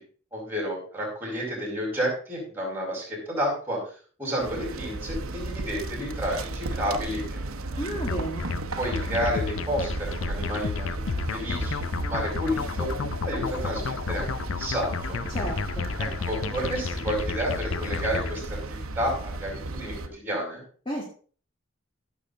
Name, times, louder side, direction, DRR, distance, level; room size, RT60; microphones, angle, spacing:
voice 1, 0.3-3.8 4.2-7.8 8.8-12.9 13.2-15.2 16.0-20.6, equal, 10° right, -1 dB, 4.8 m, -31 dB
sound 1, 4.4-20.1, right 2 dB, 85° right, 0.9 m, -34 dB
voice 2, 7.8-8.5 15.3-15.9 20.9-21.0, equal, 25° left, -2 dB, 1.8 m, -32 dB
sound 2, 8.1-18.4, left 5 dB, 65° left, 0.5 m, -32 dB
14.5 x 7.0 x 3.8 m, 0.42 s
head